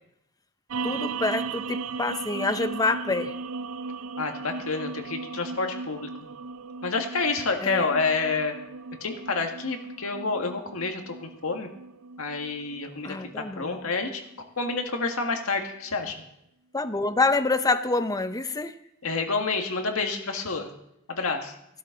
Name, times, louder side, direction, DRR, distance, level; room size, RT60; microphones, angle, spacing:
sound 1, 0.7-15.3, right 4 dB, 75° right, 0.6 m, -37 dB
voice 1, 0.8-3.3 7.6-7.9 13.0-13.8 16.7-18.8, left 3 dB, 15° left, 11 dB, 0.7 m, -26 dB
voice 2, 4.2-6.1 6.8-8.5 9.0-11.7 12.2-14.2 14.6-16.1 19.0-20.7 21.1-21.6, left 4 dB, 85° left, 4 dB, 1.9 m, -29 dB
16.0 x 12.5 x 3.9 m, 0.80 s
head